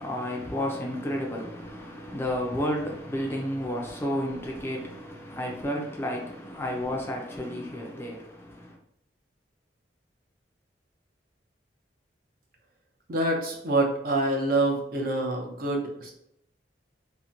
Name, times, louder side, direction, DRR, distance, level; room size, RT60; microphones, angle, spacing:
voice 1, 0.0-8.8, left 1 dB, 15° left, 0.4 m, -32 dB
voice 2, 13.1-16.1, right 2 dB, 55° right, 0.6 m, -26 dB
2.8 x 2.1 x 2.5 m
head